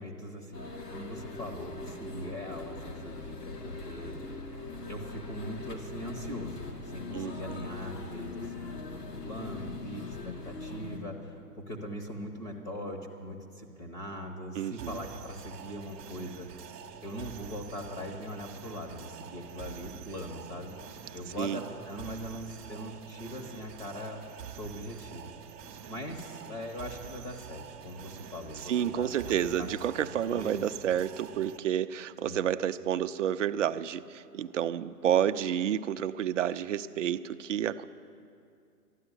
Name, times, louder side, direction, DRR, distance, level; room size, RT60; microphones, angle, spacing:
voice 1, 0.0-4.6 4.9-11.4 11.7-16.5 17.0-20.8 21.1-24.2 24.5-25.3 25.9-29.3 29.6-29.7 30.0-30.7 32.2-32.4, equal, 20° left, 1 dB, 1.1 m, -41 dB
sound 1, 0.5-11.0, left 3 dB, 75° left, 2.7 m, -41 dB
voice 2, 7.1-7.6 14.6-15.0 21.4-21.6 28.7-37.8, right 10 dB, 50° right, 11 dB, 0.6 m, -30 dB
sound 2, 14.8-31.6, right 8 dB, 25° right, 0.9 m, -46 dB
13.0 x 10.5 x 9.8 m, 2.5 s
hypercardioid pair, 145°, 48 cm